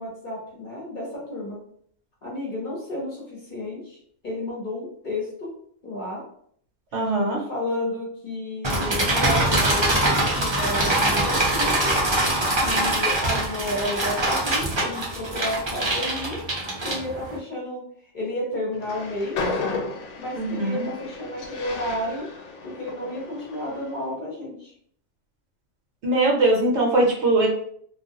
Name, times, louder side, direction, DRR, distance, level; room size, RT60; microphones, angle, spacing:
voice 1, 0.0-1.6 2.2-5.5 5.8-6.2 7.5-11.9 12.6-16.4 16.8-17.8 18.1-19.4 20.2-22.3 22.6-24.7, left 1 dB, 45° left, -4 dB, 0.8 m, -31 dB
voice 2, 6.9-7.4 20.4-20.9 26.0-27.5, right 2 dB, 65° right, -1 dB, 0.9 m, -21 dB
sound 1, 8.6-17.4, right 1 dB, 30° right, 0.5 m, -23 dB
Train, 18.7-24.0, left 4 dB, 70° left, 0.9 m, -34 dB
2.3 x 2.2 x 2.7 m, 0.63 s
omnidirectional pair, 1.3 m